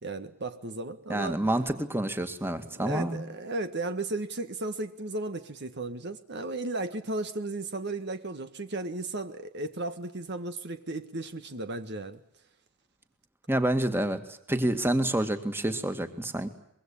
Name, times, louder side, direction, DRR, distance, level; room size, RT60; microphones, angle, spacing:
voice 1, 0.0-1.4 2.7-12.2, right 2 dB, 55° right, 1.6 m, -35 dB
voice 2, 1.1-3.2 13.5-14.2 14.5-16.5, right 1 dB, 10° right, 2.2 m, -28 dB
24.5 x 22.5 x 8.6 m
head